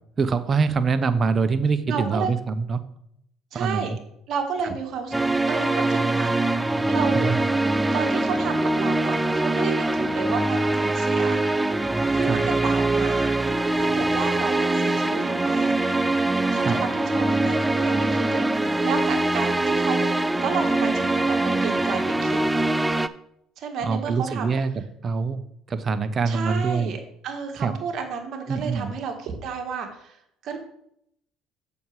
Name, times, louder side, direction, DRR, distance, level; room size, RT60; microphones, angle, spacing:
voice 1, 0.2-2.8 3.5-4.0 7.1-7.4 12.2-12.4 16.6-16.8 23.8-24.7 25.0-26.9 27.6-27.8 28.5-28.9, right 5 dB, 40° right, 11 dB, 0.9 m, -24 dB
voice 2, 1.9-2.3 3.5-3.9 4.3-5.2 5.5-6.4 6.9-7.3 7.9-11.4 12.1-13.3 13.7-15.7 16.5-20.1 20.4-22.4 23.6-24.6 26.3-30.6, right 6 dB, 60° right, 3 dB, 1.8 m, -31 dB
sound 1, 5.1-23.1, right 2 dB, 10° right, 0.5 m, -23 dB
7.2 x 6.0 x 4.8 m, 0.72 s
hypercardioid pair, 65°, 0 cm